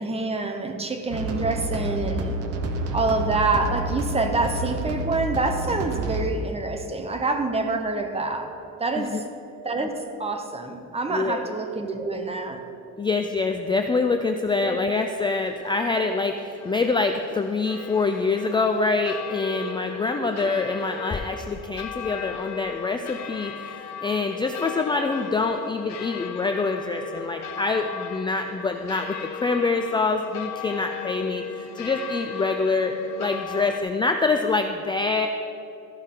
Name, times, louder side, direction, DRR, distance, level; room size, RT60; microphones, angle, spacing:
voice 1, 0.0-2.4 2.9-8.5 8.8-9.2 9.6-12.6 14.6-14.9 20.2-20.3, right 3 dB, 20° right, 6 dB, 0.8 m, -27 dB
sound 1, 1.1-6.2, right 1 dB, 50° right, 0.9 m, -29 dB
voice 2, 11.1-11.4 13.0-29.1 29.4-32.9 33.2-35.3, left 3 dB, 15° left, 5 dB, 0.3 m, -25 dB
sound 2, 15.2-33.8, left 8 dB, 65° left, 0.7 m, -37 dB
14.0 x 10.5 x 3.7 m, 2.8 s
cardioid pair, 175°, 30 cm